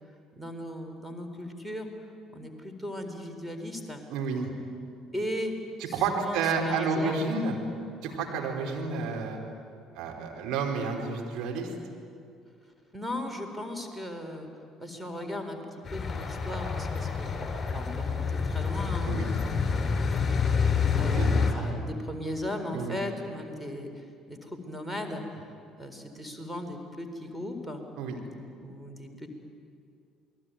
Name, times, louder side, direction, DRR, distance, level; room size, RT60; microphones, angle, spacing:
voice 1, 0.3-1.9 2.3-4.0 5.1-5.6 5.8-7.3 12.6-14.5 14.8-17.4 17.7-20.6 21.0-25.2 25.8-27.8 28.6-29.3, left 1 dB, 5° right, 6 dB, 4.2 m, -37 dB
voice 2, 4.1-4.5 5.9-7.6 8.0-9.4 9.9-11.7 19.0-19.3 21.1-21.4 22.7-23.0 28.0-28.2, right 4 dB, 60° right, 1 dB, 4.7 m, -30 dB
sound 1, 15.9-21.5, left 5 dB, 35° left, 5.9 m, -27 dB
28.0 x 21.5 x 9.4 m, 2.4 s
hypercardioid pair, 55°, 0 cm